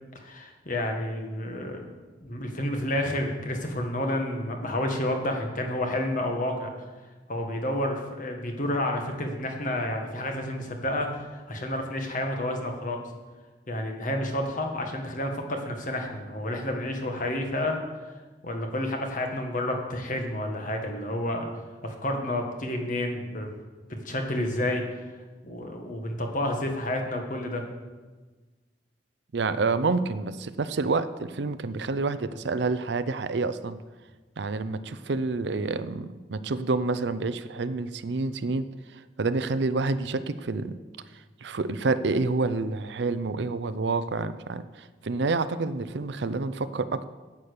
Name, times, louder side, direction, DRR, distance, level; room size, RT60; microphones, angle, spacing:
voice 1, 0.2-1.9 2.2-6.7 7.3-13.0 13.7-17.8 18.4-21.5 21.8-23.5 23.9-24.8 25.4-27.6, left 1 dB, 45° left, 3 dB, 1.6 m, -30 dB
voice 2, 29.3-33.8 34.4-40.8 41.4-47.1, right 3 dB, 70° right, 13 dB, 0.6 m, -28 dB
9.6 x 8.4 x 6.7 m, 1.3 s
head